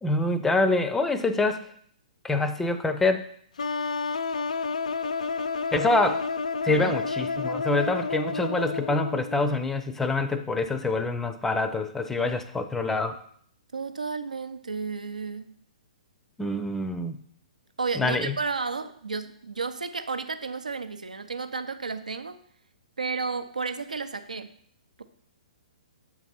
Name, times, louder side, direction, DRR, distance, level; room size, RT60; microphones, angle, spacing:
voice 1, 0.0-1.7 2.2-3.3 5.7-6.2 6.6-13.2 16.4-17.2 18.0-18.4, left 2 dB, 5° left, 10 dB, 0.5 m, -26 dB
sound 1, 3.6-9.4, left 4 dB, 65° left, 0.4 m, -30 dB
voice 2, 6.7-7.0 13.7-15.6 17.8-22.4 23.0-24.5, right 4 dB, 75° right, 10 dB, 0.7 m, -32 dB
7.4 x 4.0 x 5.8 m, 0.62 s
figure-of-eight pair, 120°, 4 cm